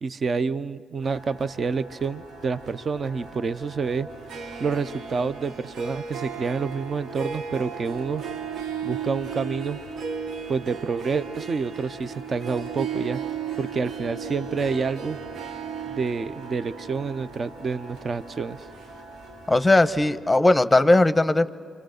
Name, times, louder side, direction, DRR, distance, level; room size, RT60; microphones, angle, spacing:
voice 1, 0.0-4.1 4.6-8.3 8.8-9.8 10.5-13.2 13.6-15.2 15.9-18.7, right 5 dB, 40° right, 13 dB, 0.7 m, -28 dB
sound 1, 1.0-20.2, right 1 dB, 90° right, 5.2 m, -46 dB
Harp, 4.1-19.5, right 7 dB, 70° right, 1.1 m, -36 dB
voice 2, 19.5-21.5, left 2 dB, 10° left, 12 dB, 0.9 m, -18 dB
29.0 x 25.5 x 6.5 m, 2.3 s
cardioid pair, 90°, 0 cm